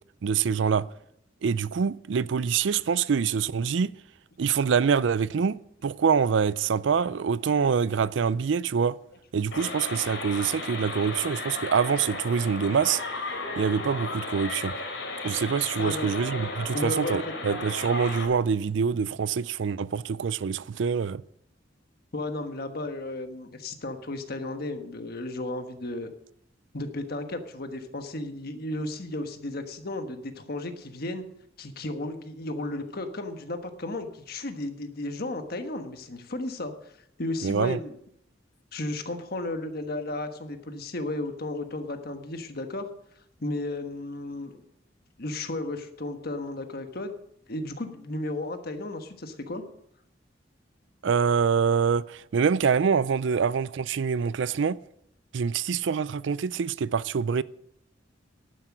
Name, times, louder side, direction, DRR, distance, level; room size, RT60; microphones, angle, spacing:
voice 1, 0.2-0.9 1.4-3.9 4.4-5.6 5.8-9.0 9.3-13.0 13.6-14.7 15.2-21.2 37.4-37.8 51.0-54.8 55.3-57.4, right 6 dB, 75° right, 0.4 m, -25 dB
sound 1, 9.5-18.2, left 3 dB, 85° left, 3.3 m, -35 dB
voice 2, 15.8-16.1 16.7-17.2 22.1-26.1 26.7-31.2 31.6-36.9 37.2-37.9 38.7-42.9 43.4-44.6 45.2-47.1 47.5-49.6, left 2 dB, 55° left, 1.3 m, -34 dB
11.0 x 9.9 x 6.1 m
head